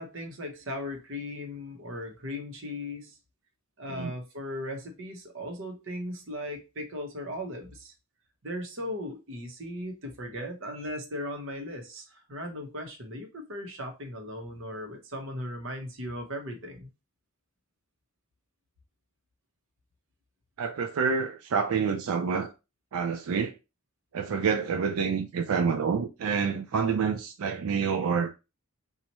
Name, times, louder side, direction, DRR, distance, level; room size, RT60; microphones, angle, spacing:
voice 1, 0.0-3.2 3.8-7.9 8.4-16.9, left 1 dB, 65° right, 0.9 m, -37 dB
voice 2, 20.6-22.5 22.9-23.6 24.1-28.3, right 6 dB, 90° right, 0.4 m, -28 dB
2.9 x 2.4 x 4.1 m
head